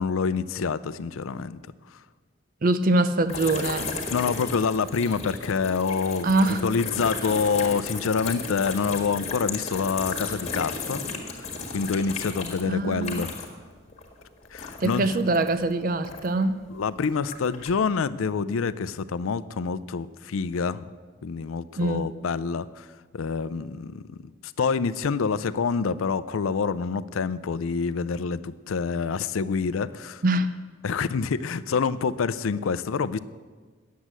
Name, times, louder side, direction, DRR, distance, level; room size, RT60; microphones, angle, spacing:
voice 1, 0.0-1.6 4.1-11.0 11.7-13.3 14.5-15.1 16.7-20.8 21.2-22.9 23.1-24.3 24.6-30.2 30.8-33.2, left 5 dB, 85° left, 16 dB, 0.4 m, -27 dB
voice 2, 2.6-3.9 6.2-6.6 12.6-13.3 14.8-16.7 21.8-22.1 30.2-30.5, right 2 dB, 45° right, 12 dB, 0.5 m, -23 dB
sound 1, 3.3-13.7 13.9-16.4 17.0-17.8, left 4 dB, 35° left, 1.6 m, -34 dB
9.4 x 8.2 x 7.4 m, 1.4 s
head